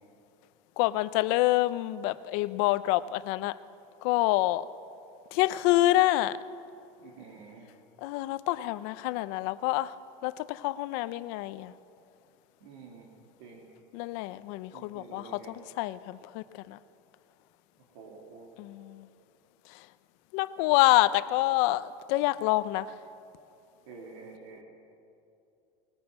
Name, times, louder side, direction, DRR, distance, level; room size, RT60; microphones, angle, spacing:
voice 1, 0.8-3.6 4.0-4.7 5.3-6.4 8.0-9.9 10.2-11.7 13.9-16.8 18.6-19.1 19.7-19.9 20.3-22.9, left 17 dB, 70° left, 0.7 m, -27 dB
voice 2, 7.0-7.7 12.6-13.1 13.4-13.7 14.7-15.6 17.9-18.5 23.9-24.6, right 4 dB, 85° right, 3.4 m, -48 dB
21.0 x 20.5 x 7.5 m
supercardioid pair, 140°, 15 cm